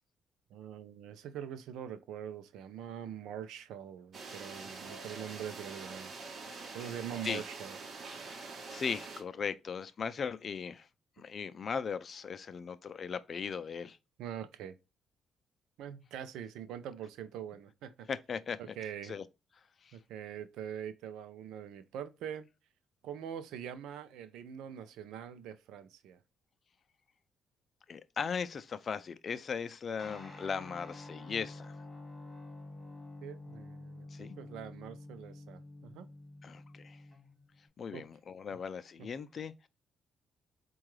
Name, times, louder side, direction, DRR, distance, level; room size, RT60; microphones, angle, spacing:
voice 1, 0.5-6.1 6.7-7.8 14.2-14.8 15.8-18.1 18.6-19.2 19.9-22.5 23.0-26.2 33.2-36.1 37.9-38.0 39.0-39.1, right 9 dB, 90° right, 0.5 m, -43 dB
sound 1, 4.1-9.2, right 4 dB, 45° right, 1.0 m, -45 dB
voice 2, 8.3-10.9 11.2-14.0 18.1-18.6 19.1-19.2 19.8-20.0 27.9-31.7 34.1-34.3 36.4-37.0 37.8-39.7, left 6 dB, 45° left, 0.4 m, -38 dB
Guitar, 30.0-37.7, left 2 dB, 20° left, 1.6 m, -49 dB
4.5 x 2.3 x 3.0 m
cardioid pair, 90°, 0 cm